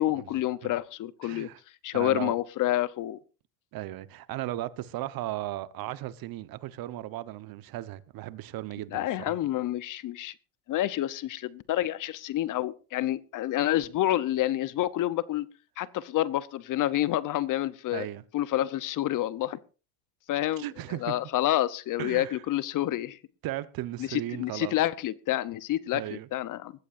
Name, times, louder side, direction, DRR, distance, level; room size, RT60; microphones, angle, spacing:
voice 1, 0.0-1.5 1.8-3.2 8.9-10.3 10.7-15.5 15.8-18.1 18.3-19.6 20.3-20.7 21.0-23.2 24.0-26.7, left 14 dB, 45° left, 0.8 m, -28 dB
voice 2, 1.2-1.6 1.9-2.4 3.7-9.4 17.9-18.2 20.6-21.2 22.0-22.4 23.4-24.7 25.9-26.3, right 15 dB, 50° right, 1.1 m, -36 dB
20.5 x 14.0 x 2.6 m
hypercardioid pair, 90°, 45 cm